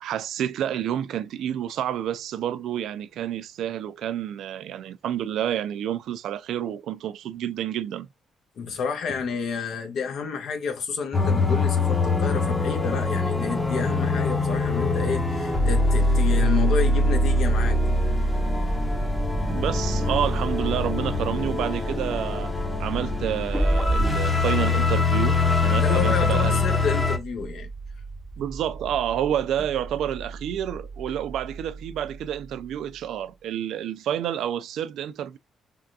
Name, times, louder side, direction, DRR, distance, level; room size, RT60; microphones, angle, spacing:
voice 1, 0.0-8.1 19.5-22.5 22.8-26.7 28.4-35.4, right 10 dB, 80° right, 0.3 m, -29 dB
voice 2, 8.6-17.8 25.8-27.7, left 5 dB, 70° left, 1.0 m, -30 dB
sound 1, 11.1-27.2, left 2 dB, 15° left, 0.8 m, -23 dB
sound 2, 18.6-33.4, right 4 dB, 15° right, 0.5 m, -40 dB
3.5 x 2.4 x 2.6 m
cardioid pair, 105°, 0 cm